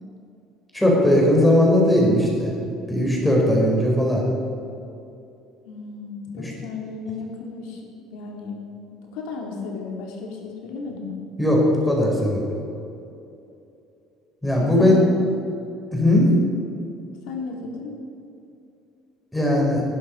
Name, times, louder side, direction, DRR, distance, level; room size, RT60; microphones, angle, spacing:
voice 1, 0.7-2.5 2.9-4.2 6.4-6.5 11.4-12.4 14.4-15.0 15.9-16.3 19.3-19.8, left 1 dB, 5° left, -2 dB, 4.4 m, -18 dB
voice 2, 5.6-7.8 8.1-8.6 9.1-11.1 14.6-15.2 17.3-18.0, left 3 dB, 90° left, 0 dB, 2.8 m, -34 dB
19.5 x 11.0 x 5.3 m, 2.7 s
cardioid pair, 135°, 0 cm